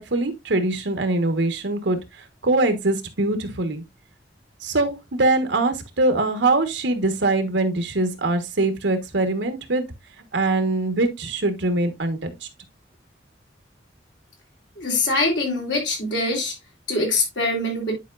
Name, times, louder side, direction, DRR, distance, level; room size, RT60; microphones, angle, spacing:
voice 1, 0.0-2.0 2.4-3.8 4.6-9.8 10.3-12.5, right 2 dB, 85° right, 1.4 m, -23 dB
voice 2, 14.8-16.5 16.9-17.9, left 2 dB, 85° left, 3.3 m, -23 dB
10.0 x 4.9 x 2.5 m
head